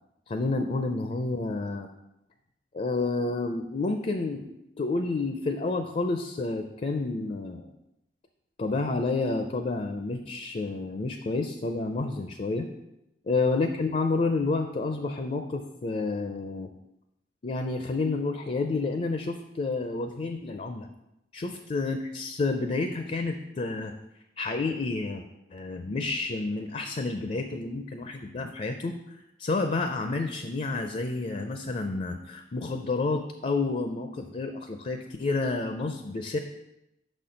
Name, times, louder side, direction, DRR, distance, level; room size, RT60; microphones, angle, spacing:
voice 1, 0.3-1.9 2.7-4.5 4.8-7.7 8.6-12.7 13.3-16.7 17.4-20.9 21.3-23.9 24.4-25.2 25.5-36.4, left 3 dB, 40° left, 6 dB, 0.4 m, -30 dB
6.1 x 4.3 x 5.0 m, 0.88 s
head